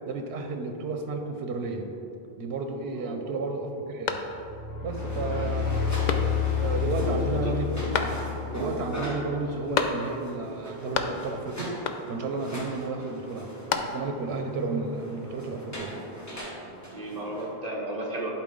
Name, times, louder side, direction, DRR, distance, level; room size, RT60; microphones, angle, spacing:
voice 1, 0.1-1.9 2.4-4.3 4.8-5.7 6.6-11.7 12.1-13.5 13.8-15.9, right 3 dB, 90° right, 5 dB, 0.9 m, -32 dB
sound 1, 4.0-4.7 5.2-5.3 6.0-6.7 7.9-8.6 9.7-10.4 10.6-11.4 11.8-12.3 13.3-14.3, left 5 dB, 55° left, 0.5 m, -31 dB
sound 2, 4.3-9.0, left 7 dB, 40° left, 1.5 m, -29 dB
sound 3, 4.9-17.5, right 1 dB, 15° left, 1.2 m, -39 dB
voice 2, 7.0-7.7 16.9-18.3, right 1 dB, 40° right, -3 dB, 1.3 m, -35 dB
11.0 x 4.5 x 3.8 m, 2.7 s
omnidirectional pair, 1.1 m